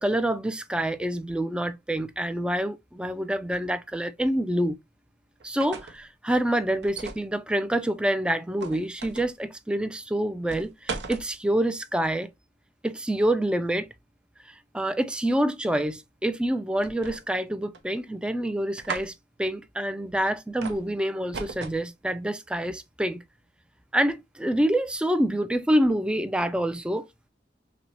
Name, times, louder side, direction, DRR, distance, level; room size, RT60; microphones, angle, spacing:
voice 1, 0.0-4.8 5.4-12.3 12.8-13.9 14.4-19.1 19.4-23.2 23.9-27.1, right 1 dB, 5° right, 0.3 m, -27 dB
sound 1, 5.4-6.0 6.8-7.3 8.6-9.3 10.5-11.3 16.8-17.4 17.7-18.3 18.8-19.1 20.6-20.9 21.3-21.8, right 4 dB, 70° right, 0.7 m, -37 dB
5.9 x 2.1 x 2.7 m
head